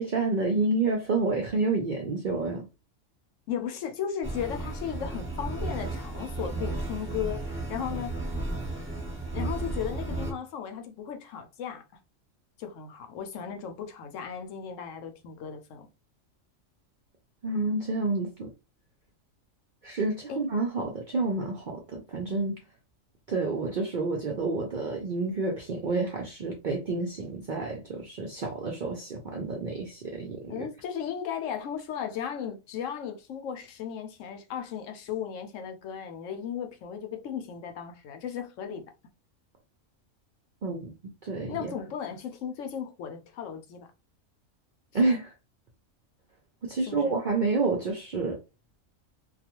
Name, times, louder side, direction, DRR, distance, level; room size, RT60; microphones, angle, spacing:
voice 1, 0.0-2.7 17.4-18.5 19.8-22.6 23.3-30.7 40.6-40.9 41.2-41.7 44.9-45.3 46.6-48.4, right 3 dB, 60° right, 0.5 m, -29 dB
voice 2, 3.5-8.2 9.3-11.8 12.6-15.9 20.3-20.4 30.5-38.9 41.5-43.9 46.8-47.1, left 8 dB, 75° left, 0.9 m, -36 dB
sound 1, 4.2-10.3, right 2 dB, 10° right, 0.8 m, -34 dB
2.3 x 2.3 x 2.8 m
omnidirectional pair, 1.4 m